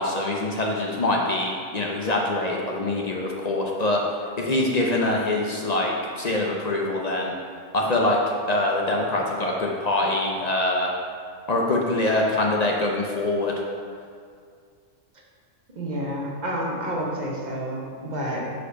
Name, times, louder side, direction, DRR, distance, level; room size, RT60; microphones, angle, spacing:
voice 1, 0.0-4.0 4.4-7.3 7.7-8.2 8.5-11.0 11.5-13.5, left 2 dB, 50° left, -1 dB, 0.5 m, -24 dB
voice 2, 15.8-18.5, equal, 40° right, -2 dB, 0.9 m, -29 dB
4.9 x 4.4 x 5.5 m, 2.2 s
omnidirectional pair, 1.4 m